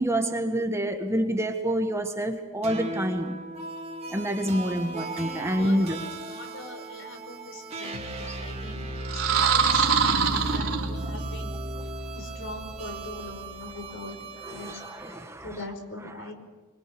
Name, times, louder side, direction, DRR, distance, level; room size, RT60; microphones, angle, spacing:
voice 1, 0.0-3.4 4.1-6.1 8.3-8.4 14.4-15.6, right 1 dB, 15° right, 1.6 m, -27 dB
sound 1, 2.6-15.1, right 2 dB, 30° right, 3.0 m, -36 dB
voice 2, 4.8-11.5 12.1-14.2 14.5-14.8 15.4-16.3, left 2 dB, 65° left, 5.1 m, -42 dB
sound 2, 9.0-11.4, right 6 dB, 85° right, 3.4 m, -24 dB
25.0 x 24.5 x 7.0 m
head